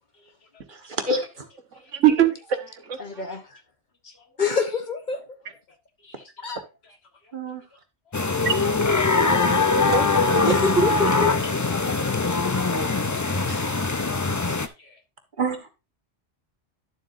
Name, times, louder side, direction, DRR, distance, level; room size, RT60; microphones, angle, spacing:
voice 1, 0.2-0.6 1.7-1.9 4.0-4.4 6.0-6.5 7.2-7.4 8.1-8.2 14.5-15.0, left 3 dB, 60° left, 4 dB, 1.8 m, -55 dB
voice 2, 0.7-1.5 7.3-7.6 15.4-15.7, right 1 dB, 45° right, 5 dB, 1.5 m, -28 dB
voice 3, 1.7-3.2 8.4-8.9 9.7-10.3, right 10 dB, 85° right, 8 dB, 1.5 m, -24 dB
voice 4, 3.0-3.6 4.4-5.2 6.4-6.6 10.4-10.9 11.4-11.5 13.5-13.6, left 3 dB, 45° left, 7 dB, 1.0 m, -26 dB
sound 1, 8.1-14.7, left 3 dB, 25° left, 0.4 m, -22 dB
11.5 x 7.4 x 2.6 m, 0.27 s
omnidirectional pair, 1.2 m